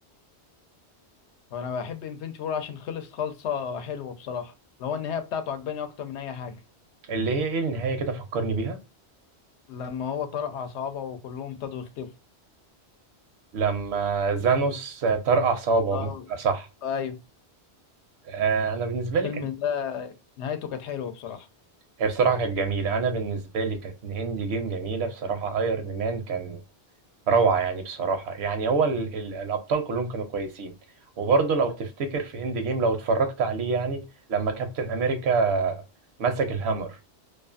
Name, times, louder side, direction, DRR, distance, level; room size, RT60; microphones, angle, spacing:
voice 1, 1.5-4.5 4.8-6.6 9.7-12.1 15.9-16.2 16.8-17.2 19.2-21.5, left 7 dB, 85° left, 0.9 m, -32 dB
voice 2, 7.1-8.8 13.5-16.1 16.4-16.7 18.2-19.5 22.0-26.6 27.3-30.7 31.2-34.0 34.3-35.8 36.2-37.0, right 4 dB, 75° right, 0.8 m, -26 dB
2.5 x 2.4 x 2.4 m
omnidirectional pair, 1.1 m